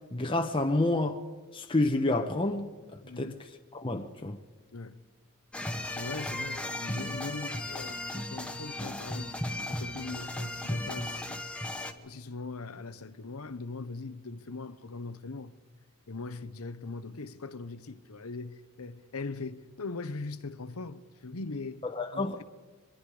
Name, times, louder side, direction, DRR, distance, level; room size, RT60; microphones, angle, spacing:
voice 1, 0.1-1.2 1.5-2.7 3.2-3.3 3.7-4.4 21.8-22.4, left 2 dB, 25° left, 1.0 m, -28 dB
voice 2, 3.0-3.4 4.7-5.0 5.9-9.4 9.7-11.4 12.0-15.5 16.1-21.8 22.1-22.4, left 3 dB, 85° left, 1.0 m, -40 dB
sound 1, 5.5-11.9, left 1 dB, 5° left, 1.1 m, -36 dB
25.0 x 21.5 x 5.0 m
head